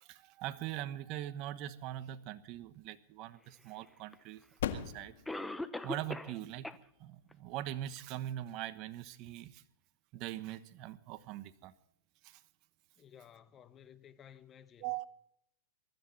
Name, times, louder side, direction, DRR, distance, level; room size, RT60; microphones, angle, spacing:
voice 1, 0.0-4.4 4.7-5.1 5.8-6.7 7.0-9.6 10.1-11.7 12.2-12.4 14.8-15.1, right 13 dB, 45° right, 1.1 m, -42 dB
sound 1, 2.2-9.3, left 10 dB, 75° left, 1.8 m, -46 dB
Cough, 4.1-4.2 5.3-6.4 6.6-6.8 7.3-7.4 8.0-8.1, left 2 dB, 5° left, 1.0 m, -39 dB
voice 2, 13.0-14.9, left 9 dB, 25° left, 1.1 m, -56 dB
23.5 x 13.0 x 4.1 m
hypercardioid pair, 135°, 0 cm